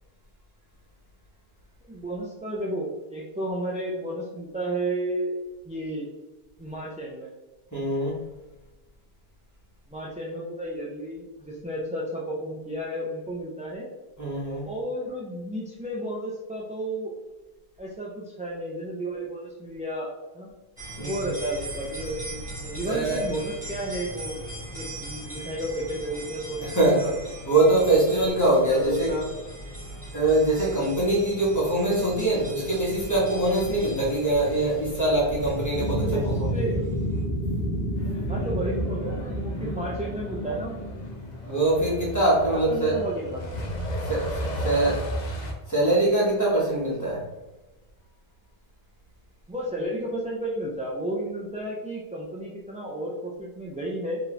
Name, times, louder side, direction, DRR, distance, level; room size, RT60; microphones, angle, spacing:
voice 1, 1.9-5.3 5.7-6.1 6.6-7.3 9.9-13.9 14.7-17.1 17.8-20.1 20.3-20.5 21.0-24.4 24.7-27.1 28.7-29.2 35.8-36.8 38.3-40.8 42.5-43.8 44.7-45.0 49.5-54.2, right 1 dB, 10° right, -4 dB, 0.4 m, -32 dB
voice 2, 7.7-8.2 14.2-14.7 21.0-21.3 22.8-23.2 26.6-27.1 27.5-29.1 30.1-36.5 39.6-39.7 41.4-42.9 44.0-45.0 45.7-47.3, right 2 dB, 15° left, -6 dB, 1.4 m, -23 dB
sound 1, 20.8-37.2, equal, 50° right, 1.7 m, -39 dB
sound 2, 35.7-41.3, equal, 85° left, 1.1 m, -29 dB
Truck, 38.0-45.5, equal, 50° left, 0.8 m, -35 dB
4.5 x 3.0 x 3.3 m, 1.1 s
omnidirectional pair, 1.0 m